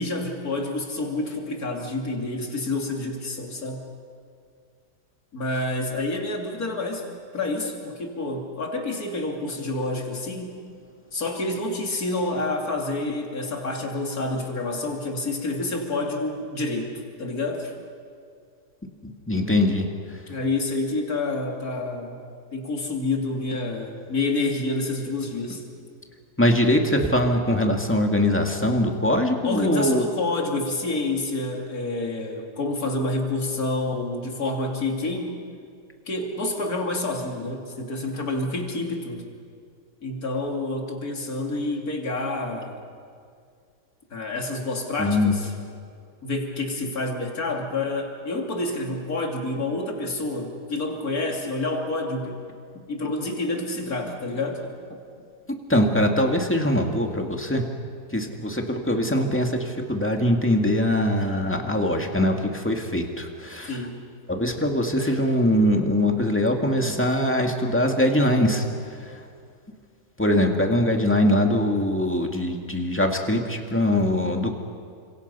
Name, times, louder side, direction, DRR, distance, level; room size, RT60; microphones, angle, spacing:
voice 1, 0.0-3.8 5.3-7.0 7.3-10.6 11.1-16.9 17.2-17.7 20.3-22.2 22.5-25.6 29.4-35.4 36.1-39.2 40.0-42.8 44.1-45.5 46.2-52.4 52.9-54.6 63.7-64.0, left 2 dB, 60° left, 1 dB, 3.2 m, -28 dB
voice 2, 19.0-19.9 26.4-30.0 45.0-45.3 55.7-57.6 58.1-63.8 64.3-68.7 69.0-69.2 70.2-74.5, left 1 dB, 5° left, 2 dB, 2.0 m, -22 dB
30.0 x 26.0 x 5.6 m, 2.2 s
omnidirectional pair, 1.8 m